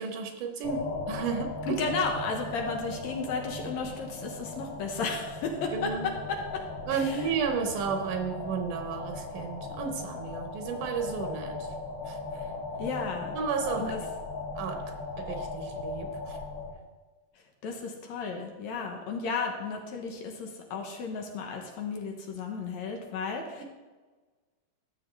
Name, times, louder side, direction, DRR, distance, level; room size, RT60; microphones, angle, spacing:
voice 1, 0.0-1.8 5.7-6.1 6.9-11.7 12.1-12.4 13.3-14.1 14.6-14.8 15.2-16.4 23.6-23.7, right 6 dB, 85° right, 4 dB, 2.6 m, -33 dB
sound 1, 0.6-16.7, left 3 dB, 55° left, 1.4 m, -38 dB
voice 2, 1.7-6.6 6.9-7.2 12.8-13.4 13.8-14.0 17.6-23.6, left 4 dB, 70° left, 2 dB, 2.1 m, -33 dB
13.0 x 7.6 x 3.3 m, 1.3 s
omnidirectional pair, 3.6 m